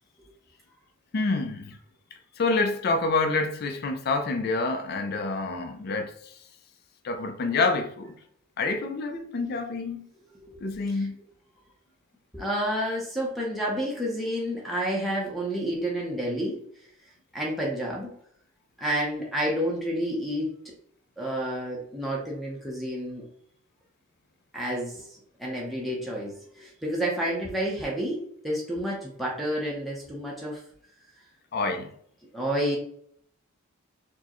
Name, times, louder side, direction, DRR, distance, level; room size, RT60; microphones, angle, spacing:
voice 1, 1.1-1.8 2.4-6.1 7.0-8.1 8.6-10.1 10.6-11.2 31.5-31.9, left 3 dB, 45° left, 0.4 m, -27 dB
voice 2, 10.5-11.1 12.3-16.6 17.3-18.1 18.8-20.7 21.2-23.3 24.5-30.6 32.3-32.8, equal, ahead, 0.6 m, -30 dB
4.4 x 2.1 x 2.9 m
head